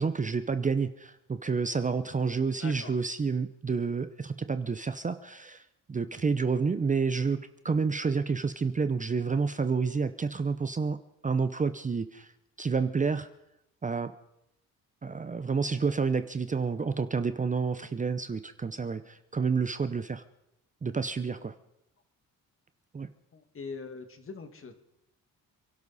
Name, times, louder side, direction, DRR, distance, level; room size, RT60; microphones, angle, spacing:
voice 1, 0.0-11.0 11.2-12.3 12.6-13.3 13.8-14.1 15.0-20.2 20.8-21.5 22.9-23.1, right 5 dB, 25° right, 11 dB, 0.7 m, -29 dB
voice 2, 2.6-2.9 23.3-24.7, left 4 dB, 40° left, 7 dB, 2.0 m, -42 dB
29.0 x 12.0 x 4.1 m, 0.86 s
cardioid pair, 115°, 34 cm